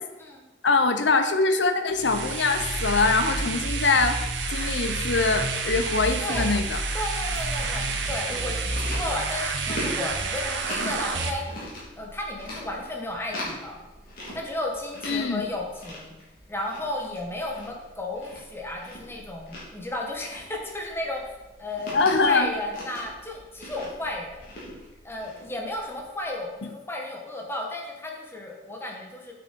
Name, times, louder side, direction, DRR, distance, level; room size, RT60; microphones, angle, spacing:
voice 1, 0.6-4.2 4.5-6.8 10.8-10.9 15.1-15.4 21.9-22.5, left 3 dB, 70° left, 7 dB, 0.8 m, -23 dB
sound 1, 1.9-11.3, right 3 dB, 80° right, 1.1 m, -29 dB
voice 2, 6.9-11.4 12.0-13.8 14.3-16.1 16.5-24.5 25.0-29.3, left 1 dB, 15° left, 0 dB, 1.4 m, -34 dB
Chewing mastication, 7.2-26.1, left 1 dB, 50° left, 3.1 m, -41 dB
8.7 x 6.3 x 4.6 m, 1.1 s
head